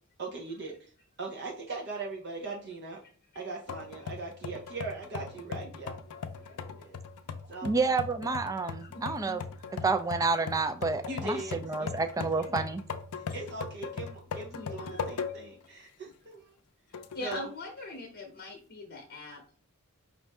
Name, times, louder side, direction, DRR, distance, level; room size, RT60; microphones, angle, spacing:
voice 1, 0.2-0.7 1.2-3.0 3.3-6.0 6.5-7.0 7.5-7.8 11.1-11.9 12.2-12.3 13.2-16.5 17.2-17.5, right 3 dB, 50° right, 0.7 m, -40 dB
sound 1, 3.7-15.6 16.1-16.2 16.9-17.5, left 5 dB, 90° left, 0.5 m, -39 dB
voice 2, 7.6-9.4 9.8-12.8, right 4 dB, 15° right, 0.3 m, -29 dB
voice 3, 8.8-9.7 12.4-12.7 14.5-15.1 16.9-19.6, left 2 dB, 45° left, 0.8 m, -43 dB
5.2 x 2.6 x 3.4 m
head